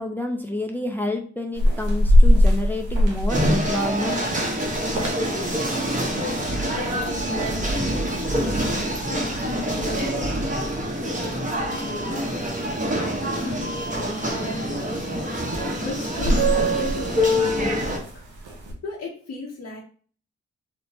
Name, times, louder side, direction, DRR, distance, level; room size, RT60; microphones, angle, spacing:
voice 1, 0.0-4.3, left 1 dB, 5° left, 4 dB, 0.5 m, -29 dB
sound 1, 1.5-18.7, left 1 dB, 90° right, 0.6 m, -26 dB
sound 2, 3.3-18.0, equal, 25° right, 0.9 m, -26 dB
voice 2, 6.3-8.8 9.0-12.3 12.9-18.2 18.8-19.8, left 2 dB, 65° left, -4 dB, 0.8 m, -37 dB
sound 3, 6.4-12.4 14.9-15.0 16.4-16.6 17.0-17.9, right 1 dB, 55° right, 1.1 m, -35 dB
3.0 x 2.1 x 2.7 m, 0.43 s
supercardioid pair, 45°, 29 cm